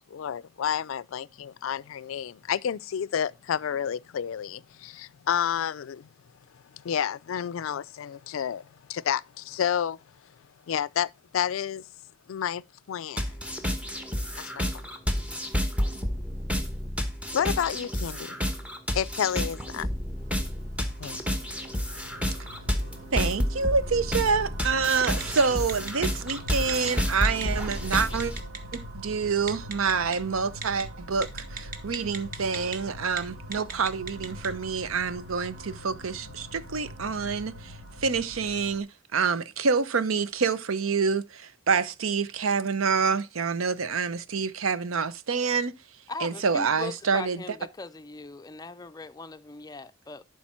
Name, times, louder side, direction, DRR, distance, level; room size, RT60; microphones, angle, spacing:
voice 1, 0.1-6.1 6.7-10.0 10.7-11.9 12.3-13.3 14.4-14.9 17.3-18.4 19.0-19.9 21.0-21.2, left 8 dB, 75° left, 0.4 m, -30 dB
sound 1, 13.2-28.4, equal, 5° right, 1.0 m, -30 dB
sound 2, 20.2-38.8, equal, 65° right, 2.5 m, -43 dB
voice 2, 23.1-28.3 28.7-45.8 46.2-47.4, right 5 dB, 85° right, 0.7 m, -27 dB
Telephone, 25.0-25.4 25.7-26.9 27.2-27.4 27.7-28.8 29.5-30.2 30.6-30.8 31.2-32.8 33.1-33.2 33.5-34.5, right 5 dB, 45° right, 1.2 m, -35 dB
voice 3, 46.1-50.2, left 3 dB, 20° left, 0.4 m, -39 dB
11.5 x 4.7 x 4.3 m
head